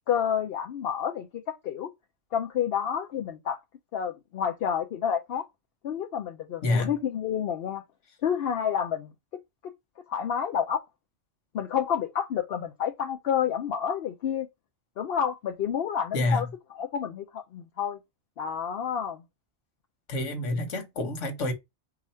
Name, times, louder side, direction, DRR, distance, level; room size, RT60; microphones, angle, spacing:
voice 1, 0.1-1.9 2.3-3.6 3.9-5.5 5.8-7.8 8.2-9.7 10.1-10.8 11.5-14.5 15.0-16.5 16.7-18.0 18.4-19.2, left 8 dB, 65° left, 0.8 m, -29 dB
voice 2, 16.1-16.5 20.1-21.5, left 2 dB, 85° left, 1.4 m, -27 dB
4.9 x 2.4 x 4.1 m
omnidirectional pair, 1.2 m